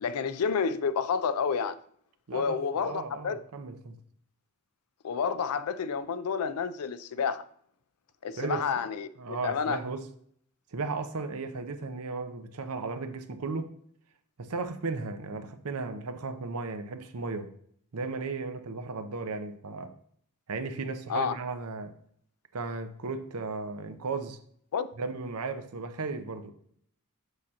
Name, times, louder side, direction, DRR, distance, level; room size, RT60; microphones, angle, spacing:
voice 1, 0.0-1.8 2.3-3.4 5.0-7.5 8.2-9.8 21.1-21.4 24.7-24.9, left 6 dB, 75° left, 0.4 m, -30 dB
voice 2, 2.3-4.0 8.4-8.7 9.2-10.1 10.7-13.7 14.4-17.5 17.9-19.9 20.5-22.0 22.5-24.4 25.0-26.5, right 4 dB, 80° right, 0.7 m, -35 dB
6.5 x 6.3 x 2.8 m
head